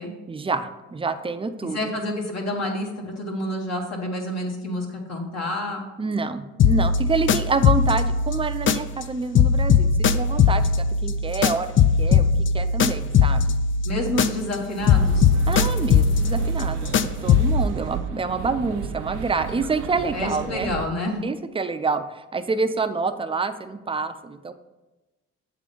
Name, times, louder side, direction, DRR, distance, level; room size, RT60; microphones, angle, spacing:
voice 1, 0.3-1.8 6.0-11.7 12.0-12.3 12.5-13.6 15.5-20.7 21.2-24.5, right 4 dB, 20° right, 10 dB, 0.5 m, -27 dB
voice 2, 1.7-5.9 13.8-15.3 20.1-21.2, left 1 dB, 60° left, 0 dB, 1.5 m, -28 dB
sound 1, 6.6-9.1 9.3-14.6 14.9-17.7, left 6 dB, 40° left, 0.4 m, -20 dB
sound 2, 14.8-20.9, right 8 dB, 85° right, 0.5 m, -33 dB
7.6 x 3.8 x 5.1 m, 1.1 s
cardioid pair, 90°, 30 cm